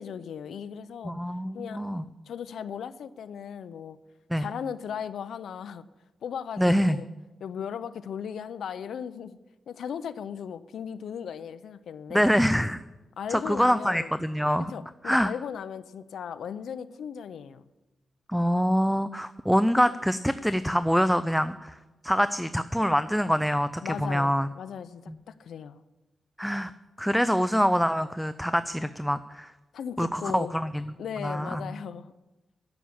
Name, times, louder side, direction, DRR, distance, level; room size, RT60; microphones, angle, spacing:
voice 1, 0.0-1.1 1.5-1.8 2.3-4.0 4.4-5.8 6.2-7.1 7.4-9.4 9.7-12.2 13.2-14.1 14.7-17.7 23.8-25.8 29.7-30.5 31.0-32.1, left 8 dB, 85° left, 15 dB, 0.6 m, -37 dB
voice 2, 1.0-2.0 4.3-4.5 6.6-7.0 12.1-12.8 13.3-14.7 15.0-15.3 18.3-21.8 22.0-24.5 26.4-26.7 27.0-29.5 30.0-30.9 31.2-31.6, equal, ahead, 12 dB, 0.4 m, -25 dB
12.0 x 7.1 x 8.6 m, 1.1 s
wide cardioid pair, 120°, 0 cm